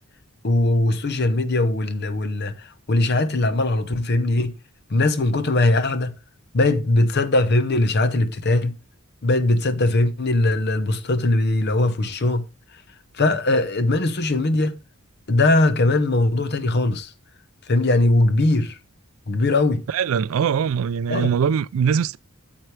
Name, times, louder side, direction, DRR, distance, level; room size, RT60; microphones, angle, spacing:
voice 1, 0.4-2.5 2.9-4.5 4.9-6.1 6.5-8.7 9.2-12.4 13.2-14.8 15.3-17.1 17.7-18.8 19.3-19.8 21.1-21.3, left 2 dB, 50° left, 0.8 m, -20 dB
voice 2, 19.9-22.2, right 7 dB, 70° right, 0.3 m, -22 dB
9.1 x 7.5 x 3.2 m
head